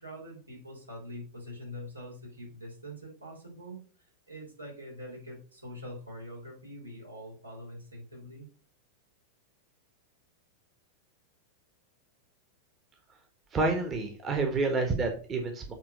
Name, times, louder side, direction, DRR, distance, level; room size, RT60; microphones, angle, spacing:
voice 1, 0.0-3.8 4.3-8.5, equal, 85° right, -2 dB, 3.0 m, -44 dB
voice 2, 13.5-15.7, right 3 dB, 25° right, 5 dB, 1.3 m, -29 dB
7.5 x 3.7 x 5.2 m, 0.40 s
figure-of-eight pair, 90°, 0 cm